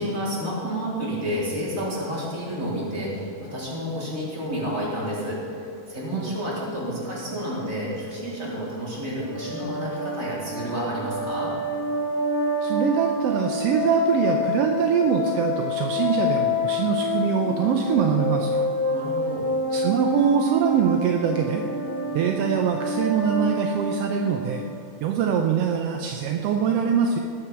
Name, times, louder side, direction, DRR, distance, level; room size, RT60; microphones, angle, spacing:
voice 1, 0.0-11.5 18.9-19.4, equal, 25° right, -6 dB, 4.0 m, -30 dB
sound 1, 9.2-24.7, left 2 dB, 40° left, 2.6 m, -27 dB
voice 2, 12.6-18.6 19.7-21.6 22.1-24.6 25.0-27.2, right 7 dB, 75° right, 3 dB, 1.5 m, -23 dB
19.5 x 7.9 x 6.0 m, 2.8 s
omnidirectional pair, 3.5 m